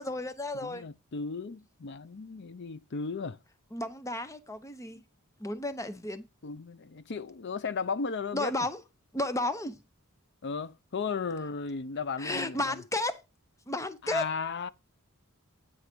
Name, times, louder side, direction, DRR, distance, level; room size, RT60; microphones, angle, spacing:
voice 1, 0.0-0.8 3.7-5.0 5.4-6.2 8.3-8.8 9.1-9.8 12.2-13.2 13.7-14.2, left 1 dB, 15° left, 0.8 m, -33 dB
voice 2, 0.5-3.4 4.9-5.0 6.4-8.5 10.4-12.8 14.0-14.7, left 5 dB, 55° left, 0.6 m, -35 dB
9.6 x 3.9 x 6.0 m
head